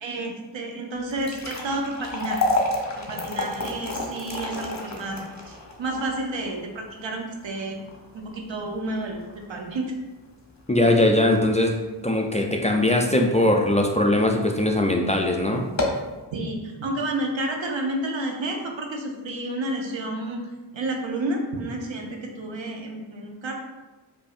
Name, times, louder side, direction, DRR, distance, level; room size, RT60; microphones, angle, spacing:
voice 1, 0.0-2.4 3.1-7.8 8.3-9.2 9.5-9.8 16.3-20.4 20.7-23.5, right 2 dB, 80° right, 2 dB, 0.7 m, -30 dB
sound 1, 1.0-13.3 13.7-13.8 14.5-14.7 15.0-15.1 15.6-16.1, left 2 dB, 40° left, 0.8 m, -31 dB
voice 2, 10.7-15.7, left 1 dB, 15° left, 1 dB, 0.4 m, -21 dB
4.8 x 2.6 x 2.4 m, 1.2 s
cardioid pair, 40°, 45 cm